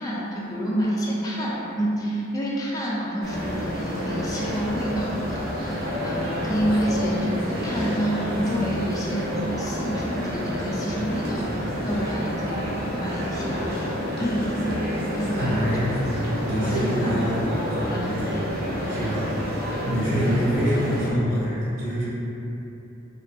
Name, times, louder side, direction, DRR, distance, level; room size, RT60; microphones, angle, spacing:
voice 1, 0.0-13.6 14.2-14.6 15.1-15.7 16.6-17.3 17.8-18.5 20.1-20.4, equal, 20° left, -6 dB, 0.3 m, -28 dB
sound 1, 3.2-21.1, equal, 55° right, 0.6 m, -29 dB
voice 2, 15.3-15.9 16.4-17.5 18.0-18.2 18.9-19.3 19.9-22.1, equal, 85° right, -9 dB, 1.1 m, -25 dB
3.5 x 2.4 x 2.3 m, 3.0 s
head